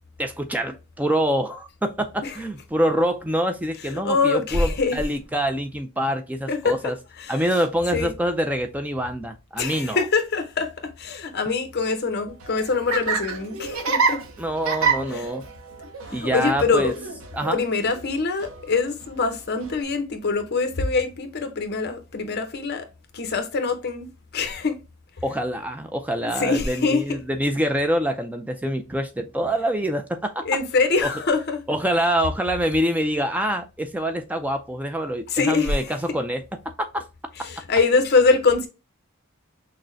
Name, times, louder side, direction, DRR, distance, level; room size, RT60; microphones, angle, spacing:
voice 1, 0.2-6.9 7.3-10.0 14.4-15.4 16.1-16.9 17.3-17.6 25.2-30.5 31.0-31.1 31.7-36.4 36.9-37.1, equal, 5° right, 0.3 m, -25 dB
voice 2, 3.8-5.0 6.5-6.8 7.2-7.3 7.9-8.1 9.6-14.2 15.1-15.3 16.2-16.9 17.5-22.9 23.1-24.8 26.2-27.2 30.4-31.6 35.3-36.0 37.4-38.7, left 4 dB, 50° left, 0.8 m, -24 dB
Laughter, 12.3-19.8, right 5 dB, 90° right, 0.8 m, -29 dB
6.0 x 2.1 x 2.6 m
head